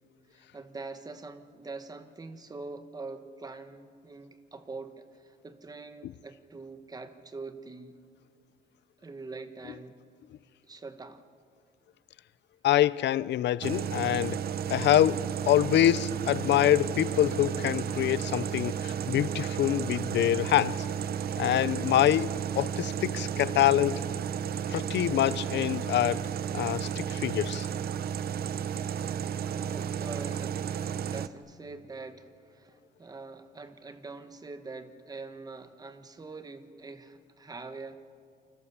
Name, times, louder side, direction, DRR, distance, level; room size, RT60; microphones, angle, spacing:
voice 1, 0.3-8.0 9.0-10.0 10.6-11.3 29.5-38.0, right 3 dB, 20° right, 1.2 m, -44 dB
voice 2, 12.6-14.4 14.7-20.8 21.4-24.0 24.7-26.3 26.5-27.7, left 12 dB, 75° left, 0.6 m, -25 dB
sound 1, 13.6-31.3, right 8 dB, 55° right, 0.7 m, -33 dB
29.0 x 25.5 x 7.2 m
wide cardioid pair, 175°, 18 cm